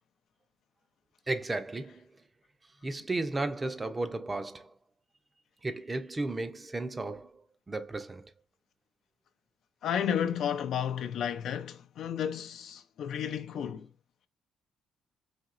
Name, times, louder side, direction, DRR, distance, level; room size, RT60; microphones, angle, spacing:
voice 1, 1.3-2.0 2.8-4.7 5.6-7.4 7.7-8.3, right 2 dB, 20° right, 0.5 m, -34 dB
voice 2, 9.8-13.9, left 8 dB, 70° left, 0.5 m, -32 dB
4.2 x 2.8 x 2.4 m
cardioid pair, 105°, 0 cm